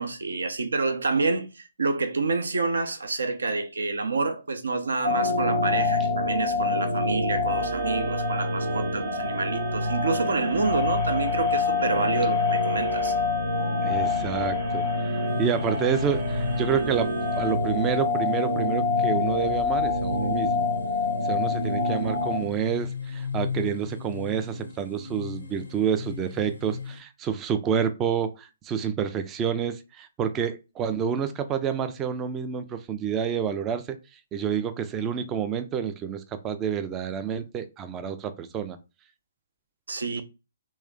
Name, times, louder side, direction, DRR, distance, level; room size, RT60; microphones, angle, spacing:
voice 1, 0.0-13.1 39.9-40.2, right 3 dB, 65° right, 0.7 m, -28 dB
sound 1, 5.0-22.4, left 3 dB, 85° right, 1.1 m, -26 dB
sound 2, 7.5-17.5, right 5 dB, 35° right, 0.9 m, -42 dB
voice 2, 13.8-14.9 15.4-20.7 21.2-34.0 34.3-38.8, right 7 dB, 20° right, 0.4 m, -29 dB
sound 3, 15.3-27.0, left 6 dB, 70° left, 0.5 m, -37 dB
3.2 x 3.1 x 3.6 m
figure-of-eight pair, 130°, 0 cm